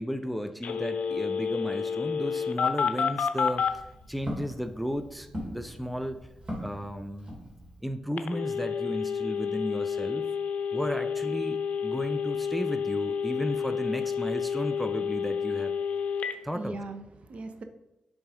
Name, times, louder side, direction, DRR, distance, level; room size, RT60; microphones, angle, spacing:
voice 1, 0.0-6.3 6.6-7.3 7.8-10.3 10.7-15.8 16.4-16.8, equal, ahead, 9 dB, 0.5 m, -34 dB
Telephone, 0.6-3.7 8.2-16.3, left 6 dB, 70° left, 0.6 m, -30 dB
Walk footsteps, 3.5-8.0, equal, 40° right, 2.4 m, -41 dB
voice 2, 16.1-17.6, right 2 dB, 55° right, 8 dB, 0.7 m, -40 dB
7.1 x 3.9 x 4.9 m, 0.89 s
cardioid pair, 75°, 2 cm